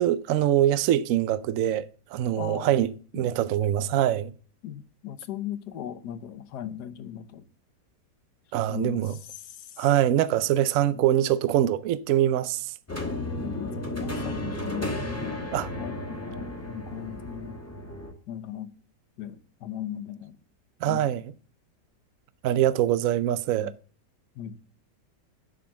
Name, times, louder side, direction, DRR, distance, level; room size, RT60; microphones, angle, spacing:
voice 1, 0.0-4.3 8.5-9.2 9.8-12.7 15.5-15.7 20.8-21.3 22.4-23.7, right 12 dB, 80° right, 0.7 m, -24 dB
voice 2, 2.4-2.8 3.2-3.3 4.6-7.4 8.7-9.0 9.4-9.8 10.8-11.0 13.4-15.4 15.8-17.6 18.3-18.7 19.2-20.4 20.9-21.0 23.6-23.7 24.4-24.6, left 10 dB, 70° left, 1.3 m, -38 dB
sound 1, 12.9-18.1, left 1 dB, 10° left, 1.2 m, -33 dB
11.0 x 3.7 x 7.3 m
omnidirectional pair, 2.0 m